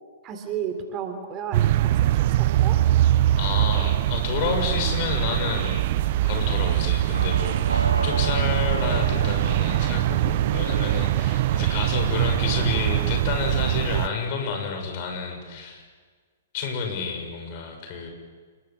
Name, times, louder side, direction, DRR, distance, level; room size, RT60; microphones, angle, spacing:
voice 1, 0.2-2.8, right 8 dB, 30° right, 6 dB, 3.4 m, -33 dB
sound 1, 1.5-14.1, right 14 dB, 45° right, 0.7 m, -22 dB
voice 2, 3.4-5.8 6.2-15.8 16.5-18.1, left 5 dB, 45° left, 4 dB, 7.0 m, -30 dB
sound 2, 7.1-13.2, right 2 dB, 80° right, 3.1 m, -35 dB
29.5 x 22.0 x 7.7 m, 1.5 s
figure-of-eight pair, 115°, 0 cm